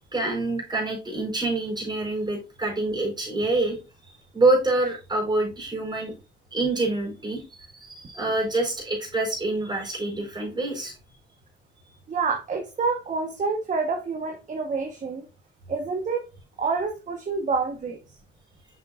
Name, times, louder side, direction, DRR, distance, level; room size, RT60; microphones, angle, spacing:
voice 1, 0.1-3.8 4.3-6.1 6.5-10.9, right 2 dB, 20° right, 0 dB, 4.1 m, -26 dB
voice 2, 12.1-15.3 15.7-16.2 16.6-18.0, right 4 dB, 40° right, 4 dB, 1.1 m, -27 dB
6.7 x 6.2 x 2.4 m, 0.30 s
cardioid pair, 90°, 20 cm